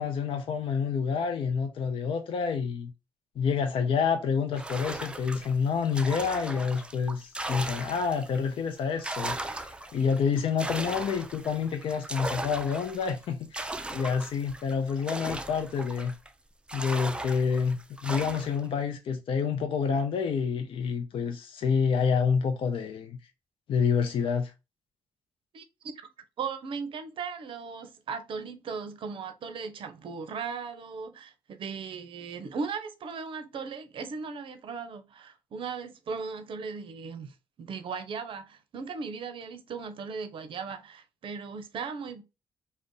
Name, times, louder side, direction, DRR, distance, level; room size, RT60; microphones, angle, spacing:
voice 1, 0.0-2.9 3.4-16.1 16.7-23.2 23.7-24.5, left 6 dB, 60° left, 0.5 m, -28 dB
sound 1, 4.6-8.4 8.8-16.3 16.7-18.7, right 2 dB, 10° right, 0.4 m, -37 dB
voice 2, 25.5-26.1 26.4-42.2, right 5 dB, 55° right, 0.6 m, -37 dB
2.5 x 2.1 x 3.7 m
supercardioid pair, 55°, 10 cm